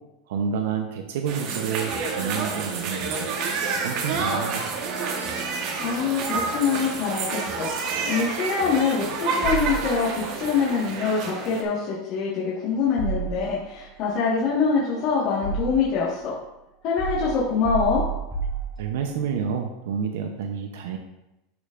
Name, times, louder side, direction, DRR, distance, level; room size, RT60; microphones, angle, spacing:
voice 1, 0.3-3.3 3.7-4.8 18.8-21.0, right 7 dB, 85° right, 4 dB, 0.7 m, -29 dB
sound 1, 1.3-11.6, right 4 dB, 50° right, 1.2 m, -29 dB
voice 2, 5.8-16.3 16.8-18.0, left 5 dB, 45° left, -6 dB, 1.5 m, -24 dB
sound 2, 9.4-10.3 13.0-13.9 14.8-16.1 17.0-19.2, right 4 dB, 10° right, 2.1 m, -31 dB
11.0 x 5.2 x 2.5 m, 0.93 s
supercardioid pair, 155°, 0 cm